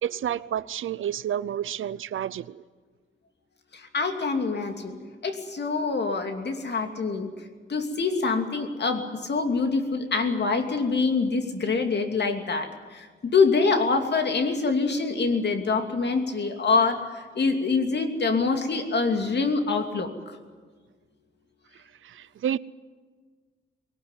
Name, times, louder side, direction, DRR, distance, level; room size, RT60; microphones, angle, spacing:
voice 1, 0.0-2.6 22.0-22.6, right 10 dB, 85° right, 0.6 m, -30 dB
voice 2, 3.9-4.9 5.2-7.3 7.7-12.7 12.9-17.0 17.4-20.1, left 4 dB, 60° left, 2.7 m, -25 dB
20.5 x 19.0 x 9.9 m
wide cardioid pair, 105°, 20 cm